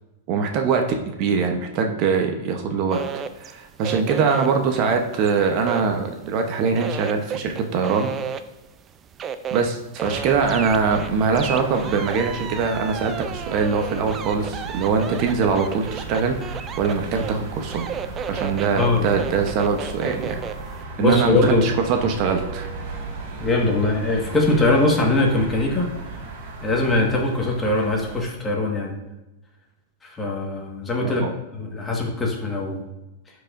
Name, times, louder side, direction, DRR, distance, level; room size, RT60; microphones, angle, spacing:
voice 1, 0.3-0.8 1.2-3.0 3.4-8.1 9.5-17.9 18.3-20.4 21.0-22.7 31.0-31.3, right 5 dB, 45° right, 4 dB, 0.8 m, -22 dB
sound 1, 2.9-6.4 6.8-20.7, right 7 dB, 25° right, 0.4 m, -33 dB
sound 2, 10.0-28.2, right 4 dB, 60° right, 1.9 m, -36 dB
voice 2, 21.0-21.7 23.4-25.9 26.6-28.9 30.0-31.2 31.5-32.8, left 2 dB, 15° left, 0 dB, 1.5 m, -21 dB
11.5 x 4.8 x 2.6 m, 1.0 s
hypercardioid pair, 135°, 0 cm